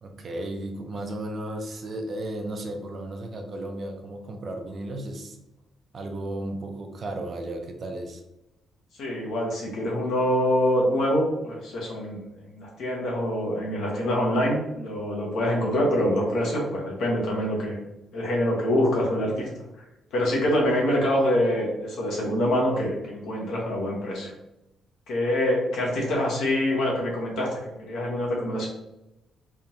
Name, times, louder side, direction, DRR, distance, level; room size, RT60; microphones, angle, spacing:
voice 1, 0.0-5.4 5.9-8.2, right 1 dB, 35° right, 3 dB, 0.5 m, -34 dB
voice 2, 9.0-17.8 18.1-19.5 20.1-24.3 25.1-28.7, left 1 dB, 70° left, -2 dB, 1.3 m, -25 dB
3.6 x 3.3 x 2.9 m, 0.92 s
cardioid pair, 165°, 0 cm